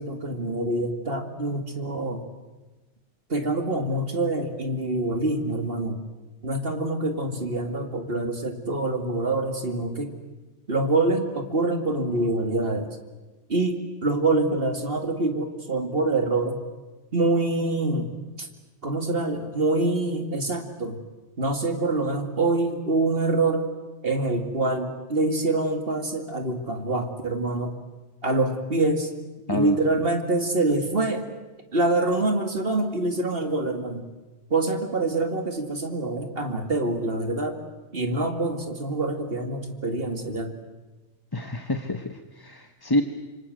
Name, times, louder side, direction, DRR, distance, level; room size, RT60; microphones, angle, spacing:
voice 1, 0.0-2.2 3.3-6.0 6.4-10.1 10.7-13.0 13.5-16.6 17.1-18.1 18.4-18.5 18.8-21.0 21.4-23.7 24.0-27.7 28.2-29.1 29.5-31.3 31.7-34.1 34.5-37.6 37.9-40.6, right 2 dB, 50° right, 5 dB, 2.5 m, -25 dB
voice 2, 41.3-43.0, left 2 dB, 20° left, 6 dB, 1.0 m, -27 dB
26.5 x 25.0 x 7.8 m, 1.2 s
omnidirectional pair, 1.2 m